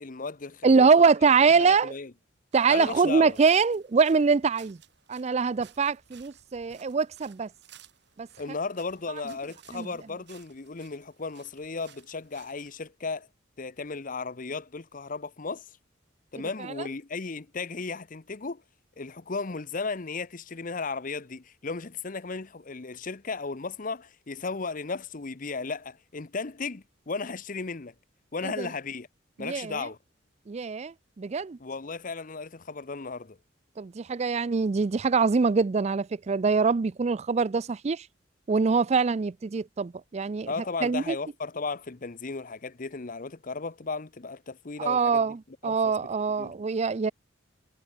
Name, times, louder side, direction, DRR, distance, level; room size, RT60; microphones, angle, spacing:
voice 1, 0.0-1.1 1.6-2.1 2.7-3.4 8.4-13.3 13.6-15.6 16.3-18.6 19.0-27.9 28.3-29.1 29.4-30.0 31.6-33.4 40.5-45.3 45.6-46.5, left 4 dB, 45° left, 0.8 m, -35 dB
voice 2, 0.6-1.9 2.5-4.8 5.1-7.5 8.2-8.3 9.7-9.9 28.4-28.7 29.4-29.9 30.5-31.6 33.8-38.1 38.5-40.5 40.8-41.2 44.8-47.1, right 5 dB, 35° right, 0.4 m, -24 dB
sound 1, 2.5-12.9, right 9 dB, 60° right, 3.4 m, -57 dB
head